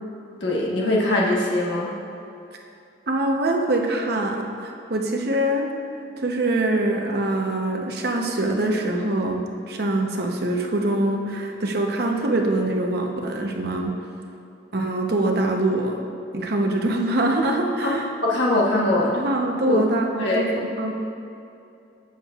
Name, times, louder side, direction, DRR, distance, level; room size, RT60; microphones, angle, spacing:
voice 1, 0.4-1.9 17.8-17.9 18.2-19.1 19.7-19.8 20.2-20.4, left 1 dB, 80° left, -3 dB, 1.3 m, -21 dB
voice 2, 3.1-5.7 6.2-13.9 14.7-16.0 16.3-18.1 19.1-20.9, right 1 dB, 60° right, 1 dB, 0.8 m, -24 dB
16.5 x 7.3 x 2.4 m, 2.7 s
head